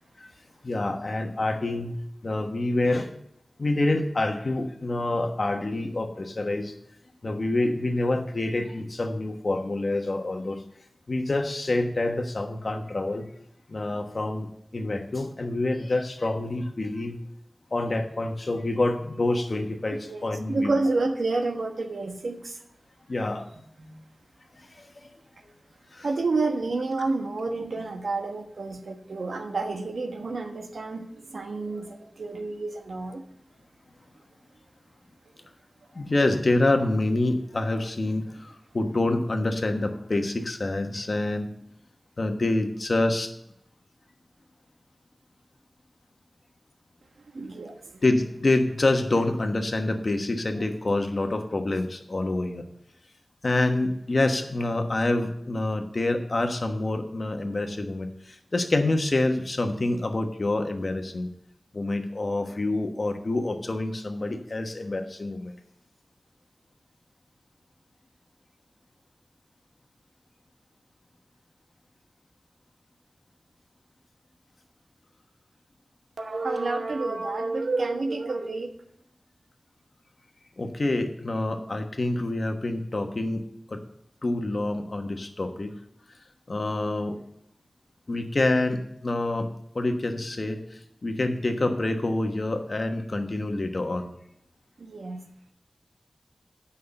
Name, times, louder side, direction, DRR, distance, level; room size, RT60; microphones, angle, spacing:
voice 1, 0.6-1.9 2.2-3.1 3.6-6.7 7.2-10.6 11.1-13.2 13.7-14.5 14.7-17.2 17.7-20.7 23.1-23.4 24.8-24.9 25.9-26.1 35.9-41.5 42.2-43.3 48.0-52.6 53.4-61.3 61.7-65.5 80.6-83.4 83.7-83.8 84.2-85.7 86.5-87.1 88.1-89.5 89.7-90.6 91.0-94.1, left 2 dB, 50° left, 5 dB, 1.2 m, -27 dB
voice 2, 20.0-22.6 23.8-24.0 26.0-33.2 47.3-48.0 76.2-78.7 94.8-95.2, right 3 dB, 85° right, 5 dB, 1.2 m, -29 dB
9.5 x 5.6 x 6.6 m, 0.77 s
wide cardioid pair, 80°, 0 cm